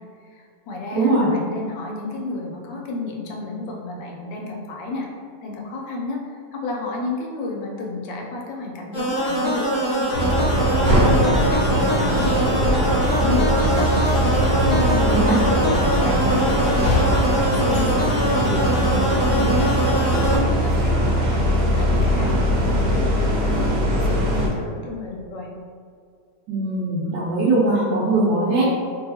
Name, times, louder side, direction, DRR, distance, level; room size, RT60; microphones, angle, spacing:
voice 1, 0.3-5.1 5.4-6.2 6.5-13.9 14.4-15.8 16.0-25.5, left 3 dB, 85° left, -1 dB, 1.3 m, -31 dB
voice 2, 0.9-1.3 15.0-15.4 26.5-28.7, right 2 dB, 80° right, -8 dB, 1.3 m, -20 dB
sound 1, 8.9-20.4, equal, 20° left, 0.8 m, -23 dB
sound 2, 10.1-24.5, equal, 60° right, 1.0 m, -21 dB
sound 3, 12.0-14.7 14.9-18.8, left 2 dB, 70° left, 0.8 m, -32 dB
3.1 x 2.7 x 2.7 m, 2.2 s
omnidirectional pair, 1.9 m